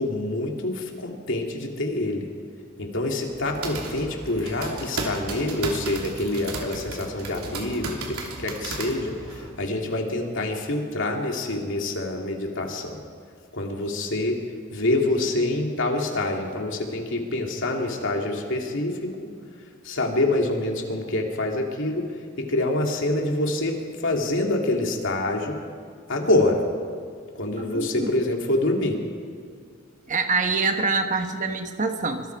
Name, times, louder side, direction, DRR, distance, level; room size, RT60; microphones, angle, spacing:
voice 1, 0.0-2.3 2.8-13.0 13.5-14.4 14.7-19.3 19.8-22.1 22.4-25.6 26.1-26.7 27.3-29.0, left 2 dB, 60° left, 1 dB, 2.8 m, -26 dB
sound 1, 3.3-9.5, right 2 dB, 85° right, 3.2 m, -34 dB
voice 2, 27.7-28.1 30.1-32.3, right 4 dB, 35° right, 6 dB, 1.2 m, -25 dB
25.0 x 24.0 x 4.8 m, 2.1 s
head